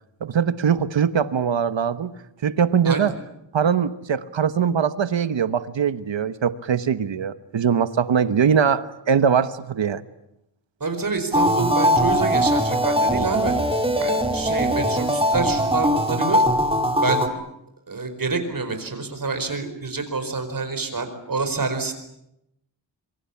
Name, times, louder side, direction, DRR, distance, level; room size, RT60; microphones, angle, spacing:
voice 1, 0.2-2.1 2.4-3.1 3.5-10.0, right 7 dB, 75° right, 12 dB, 1.3 m, -21 dB
voice 2, 10.8-13.5 14.0-16.4 17.0-17.4 17.9-21.9, right 3 dB, 45° right, 8 dB, 4.8 m, -27 dB
sound 1, 11.3-17.3, equal, 10° right, 2.3 m, -21 dB
26.0 x 24.5 x 8.6 m, 0.84 s
wide cardioid pair, 140°, 45 cm